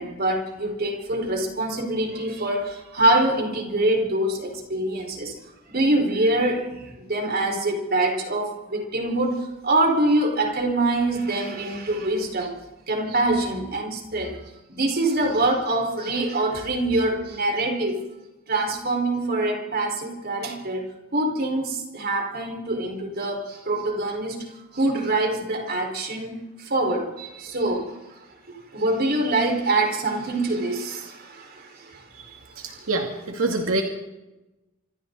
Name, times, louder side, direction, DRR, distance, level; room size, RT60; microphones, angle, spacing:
voice 1, 0.0-5.3 5.7-12.5 12.9-14.4 14.7-18.0 18.5-28.2 28.5-32.0 32.6-32.9, right 2 dB, 50° right, 2 dB, 5.0 m, -25 dB
voice 2, 32.3-33.8, right 2 dB, 80° right, 2 dB, 2.3 m, -26 dB
26.5 x 25.5 x 4.1 m, 1.0 s
head